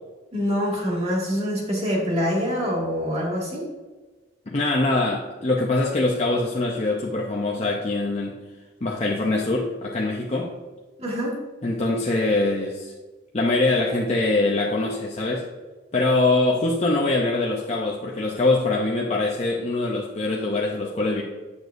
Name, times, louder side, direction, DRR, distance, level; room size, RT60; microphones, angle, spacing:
voice 1, 0.3-3.6 11.0-11.3, equal, 30° right, -4 dB, 1.9 m, -25 dB
voice 2, 4.5-8.4 8.8-10.5 11.6-12.9 13.3-15.4 15.9-21.2, left 2 dB, 35° left, -2 dB, 0.6 m, -23 dB
8.0 x 7.0 x 2.6 m, 1.3 s
head